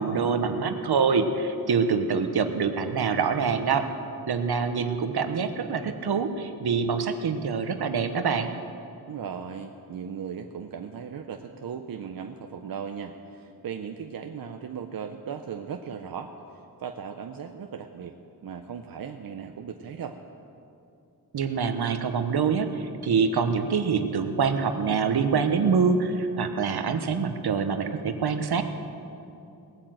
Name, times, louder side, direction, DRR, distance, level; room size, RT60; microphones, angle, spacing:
voice 1, 0.0-3.8 4.3-8.5 21.3-28.6, right 5 dB, 80° right, 8 dB, 1.1 m, -25 dB
voice 2, 9.1-16.3 16.8-18.2 18.4-20.2, right 7 dB, 65° right, 5 dB, 0.7 m, -37 dB
19.0 x 8.8 x 7.8 m, 2.7 s
wide cardioid pair, 180°, 38 cm